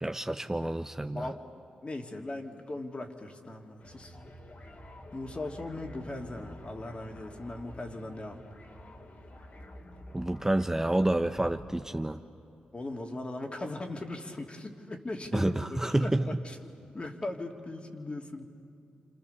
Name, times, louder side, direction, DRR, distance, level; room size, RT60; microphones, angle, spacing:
voice 1, 0.0-1.3 10.1-12.2 15.3-16.2, right 1 dB, 15° right, 7 dB, 0.9 m, -29 dB
voice 2, 1.1-4.2 5.1-8.4 12.7-15.6 16.0-18.4, left 2 dB, 35° left, 2 dB, 3.0 m, -39 dB
sound 1, 3.8-12.0, left 1 dB, 50° left, 3.6 m, -49 dB
29.5 x 27.0 x 7.1 m, 2.5 s
supercardioid pair, 45°, 3 cm